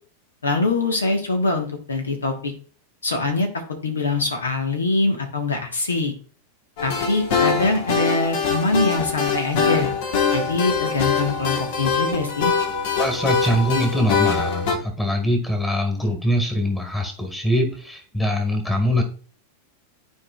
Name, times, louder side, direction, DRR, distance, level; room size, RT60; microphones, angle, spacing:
voice 1, 0.4-2.5 3.0-6.1 6.8-9.9 10.3-12.5, left 3 dB, 70° left, 4 dB, 1.3 m, -23 dB
sound 1, 6.8-14.8, left 5 dB, 50° left, 1.3 m, -23 dB
voice 2, 13.0-19.0, left 1 dB, 5° left, 4 dB, 1.8 m, -23 dB
12.5 x 4.7 x 2.4 m, 0.40 s
figure-of-eight pair, 90°, 0 cm